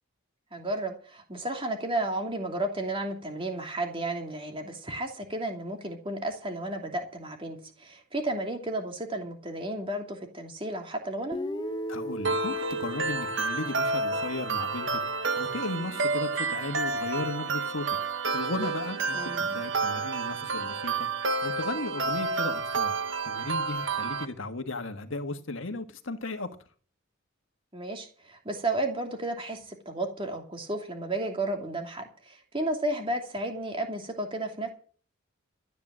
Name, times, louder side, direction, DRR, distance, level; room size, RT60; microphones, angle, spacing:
voice 1, 0.5-11.4 19.1-19.5 27.7-34.7, right 1 dB, 25° right, 2.8 m, -33 dB
Guitar, 11.3-15.3, equal, 20° left, 0.9 m, -38 dB
voice 2, 11.9-15.0 15.3-18.0 18.3-21.1 21.4-23.0 23.2-26.6, left 2 dB, 70° left, 1.6 m, -35 dB
sound 1, 12.2-24.2, right 4 dB, 60° right, 1.3 m, -30 dB
13.5 x 9.5 x 7.4 m
head